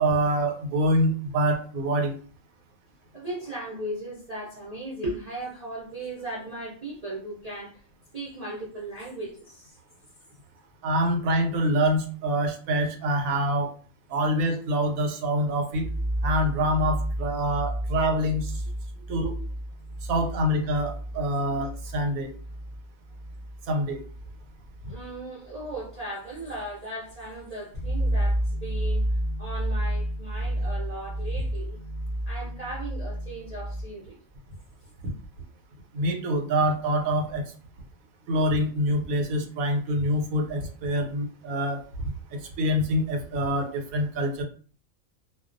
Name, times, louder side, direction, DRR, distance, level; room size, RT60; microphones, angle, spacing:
voice 1, 0.0-2.1 10.8-13.7 14.1-15.8 16.2-18.5 19.1-19.3 20.1-22.3 23.7-24.0 35.9-37.4 38.3-44.4, equal, 85° right, 3 dB, 1.1 m, -25 dB
voice 2, 3.1-7.8 8.1-9.8 18.9-19.0 24.9-29.1 29.4-31.8 32.3-34.2, right 1 dB, 50° right, -6 dB, 0.4 m, -37 dB
sound 1, 15.7-25.2 25.5-26.0 26.3-26.7 27.2-27.4 27.7-33.8, right 1 dB, 45° left, 0.5 m, -31 dB
2.3 x 2.2 x 2.5 m, 0.42 s
omnidirectional pair, 1.4 m